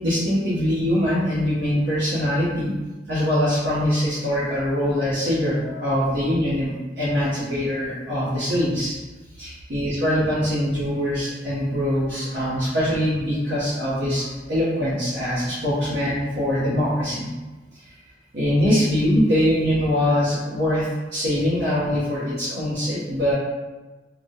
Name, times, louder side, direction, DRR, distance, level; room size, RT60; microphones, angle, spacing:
voice 1, 0.0-2.7 3.1-9.0 9.4-17.3 17.7-18.0 18.3-23.3, equal, 60° right, -10 dB, 0.6 m, -23 dB
2.2 x 2.0 x 2.7 m, 1.2 s
head